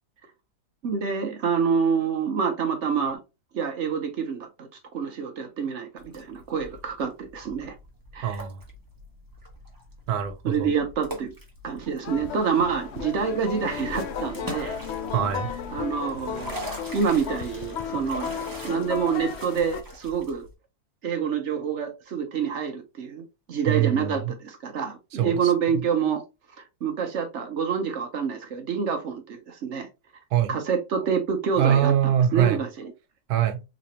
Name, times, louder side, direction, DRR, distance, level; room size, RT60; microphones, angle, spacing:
voice 1, 0.8-3.2 3.5-7.7 8.1-8.4 10.4-11.3 11.6-14.8 15.7-16.6 16.9-18.3 18.6-20.4 21.0-26.2 26.6-29.9 30.5-31.9 32.3-32.9, right 6 dB, 55° right, 0.9 m, -27 dB
sound 1, 6.0-20.5, equal, 15° right, 0.9 m, -42 dB
voice 2, 8.2-8.6 10.1-10.7 15.1-15.5 23.7-24.3 25.1-25.8 30.3-30.6 31.6-32.6 33.3-33.6, right 9 dB, 75° right, 1.2 m, -24 dB
sound 2, 12.0-19.8, left 7 dB, 65° left, 0.7 m, -34 dB
4.0 x 3.0 x 2.9 m
omnidirectional pair, 1.7 m